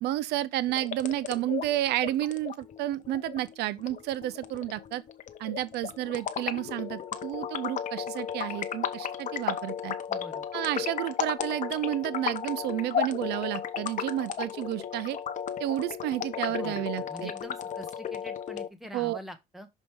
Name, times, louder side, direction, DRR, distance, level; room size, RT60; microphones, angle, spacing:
voice 1, 0.0-5.0 5.4-9.9 10.5-15.2 15.6-17.3 18.9-19.2, right 14 dB, 80° right, 0.5 m, -31 dB
sound 1, 0.7-18.7, left 8 dB, 50° left, 0.9 m, -34 dB
voice 2, 10.1-10.5 16.6-19.7, equal, ahead, 1.4 m, -45 dB
6.3 x 5.3 x 3.5 m
cardioid pair, 110°, 17 cm